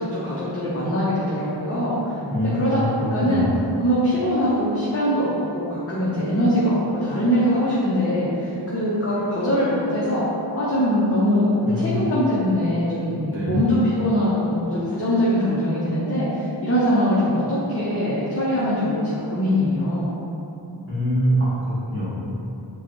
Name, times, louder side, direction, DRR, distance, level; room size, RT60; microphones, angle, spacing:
voice 1, 0.0-2.0 2.5-2.8 3.1-3.5 3.8-10.3 10.6-11.5 11.8-16.3 16.6-19.0 19.3-20.1, equal, 30° left, -9 dB, 0.8 m, -22 dB
voice 2, 2.3-3.4 11.6-12.1 13.2-13.6 20.9-22.1, equal, 25° right, -12 dB, 1.1 m, -24 dB
4.9 x 2.4 x 3.0 m, 2.8 s
cardioid pair, 40°, 45 cm